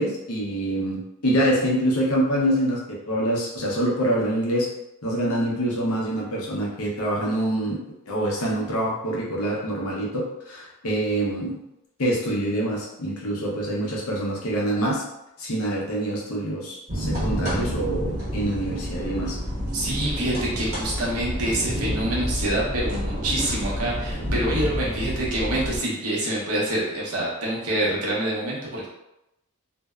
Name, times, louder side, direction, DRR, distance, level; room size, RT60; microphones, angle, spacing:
voice 1, 0.0-4.7 5.0-7.8 8.1-11.5 12.0-15.0 15.4-19.4, right 1 dB, 75° left, -4 dB, 0.7 m, -25 dB
sound 1, 16.9-25.8, equal, 45° right, 1.1 m, -29 dB
voice 2, 19.7-28.9, right 1 dB, 85° right, -4 dB, 0.8 m, -26 dB
2.6 x 2.1 x 2.3 m, 0.88 s
head